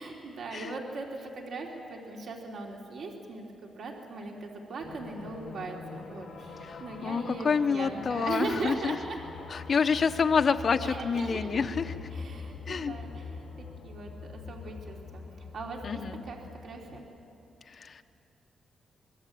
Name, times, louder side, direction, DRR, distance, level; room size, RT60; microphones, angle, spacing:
voice 1, 0.0-9.2 10.8-11.6 12.1-13.2 13.6-15.2 15.5-16.0 16.3-16.4 16.6-17.0, right 3 dB, 65° right, -1 dB, 3.2 m, -39 dB
sound 1, 4.8-17.0, left 5 dB, 55° left, 4.6 m, -44 dB
voice 2, 6.6-9.0 9.5-12.1 12.7-12.9 15.8-16.2 17.7-18.0, left 5 dB, 40° left, 6 dB, 1.1 m, -28 dB
25.0 x 21.5 x 8.7 m, 2.8 s
wide cardioid pair, 145°, 0 cm